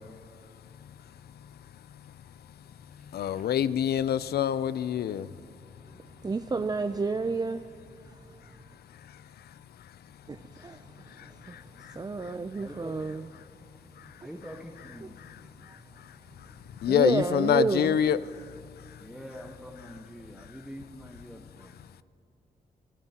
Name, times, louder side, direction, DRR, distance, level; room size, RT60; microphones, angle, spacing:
voice 1, 3.1-5.3 16.8-18.2, left 9 dB, 80° left, 0.5 m, -25 dB
voice 2, 6.2-7.6 10.3-10.8 11.5-11.6 12.0-13.3 16.9-18.0, right 4 dB, 25° right, 0.4 m, -29 dB
voice 3, 12.6-13.0 14.2-15.2 19.0-21.7, equal, 5° right, 1.2 m, -45 dB
29.5 x 14.0 x 2.9 m
cardioid pair, 65°, 16 cm